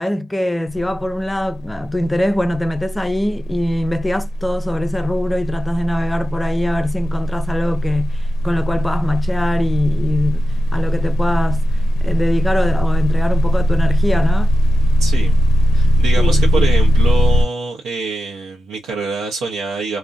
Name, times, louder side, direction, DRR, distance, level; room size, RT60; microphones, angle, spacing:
voice 1, 0.0-11.6 12.0-14.5 16.2-16.7, left 1 dB, 10° left, 0.3 m, -22 dB
sound 1, 0.7-1.0 1.3-17.5, equal, 75° left, 0.5 m, -18 dB
voice 2, 15.0-15.3 15.7-20.0, right 4 dB, 80° right, 0.7 m, -25 dB
2.4 x 2.1 x 2.4 m
cardioid pair, 95°, 0 cm